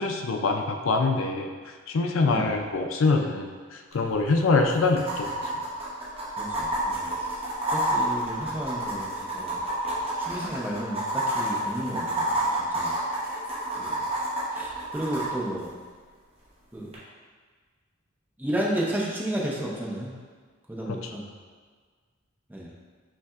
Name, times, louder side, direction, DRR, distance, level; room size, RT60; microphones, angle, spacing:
voice 1, 0.0-5.5 20.9-21.0, left 3 dB, 75° left, 4 dB, 0.4 m, -25 dB
voice 2, 2.2-2.6 6.4-9.6 10.2-13.0 13.3-13.5 13.8-13.9 14.5-15.7 16.7-16.9 18.4-20.1 20.7-21.3 22.5-22.7, right 1 dB, 10° right, -3 dB, 0.6 m, -33 dB
sound 1, 3.9-4.0 4.2-4.3 5.0-15.3 16.9-17.0, right 1 dB, 30° right, 0.9 m, -29 dB
5.6 x 3.3 x 2.4 m, 1.5 s
head